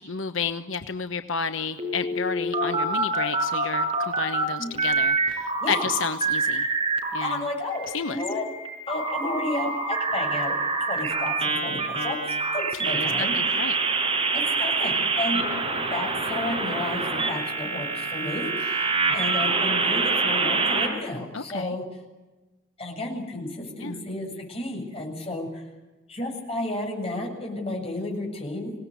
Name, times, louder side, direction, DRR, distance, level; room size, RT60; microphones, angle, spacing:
voice 1, 0.0-6.7 7.1-7.5 7.9-8.2 12.9-13.7 15.3-15.4 21.3-21.8 23.8-23.9, left 5 dB, 80° left, 8 dB, 1.1 m, -31 dB
sound 1, 1.8-4.4 4.8-7.3 7.7-20.9, right 3 dB, 25° right, 5.3 m, -26 dB
voice 2, 7.2-8.5 8.9-10.5 10.9-13.6 14.3-15.4 15.9-21.8 22.8-25.6 26.1-28.7, left 1 dB, 30° left, 1 dB, 7.4 m, -32 dB
26.5 x 18.0 x 9.5 m, 1.1 s
head